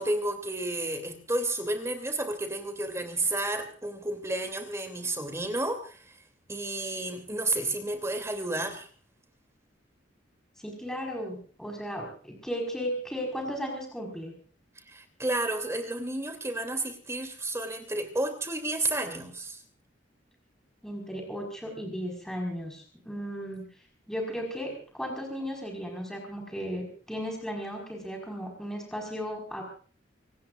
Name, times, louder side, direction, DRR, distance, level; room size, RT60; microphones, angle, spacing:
voice 1, 0.0-6.2 6.5-8.9 14.9-19.6, right 2 dB, 15° right, 6 dB, 2.9 m, -31 dB
voice 2, 10.6-14.3 20.8-23.7 24.1-29.6, equal, 5° left, 1 dB, 5.0 m, -35 dB
26.5 x 19.0 x 2.5 m, 0.42 s
head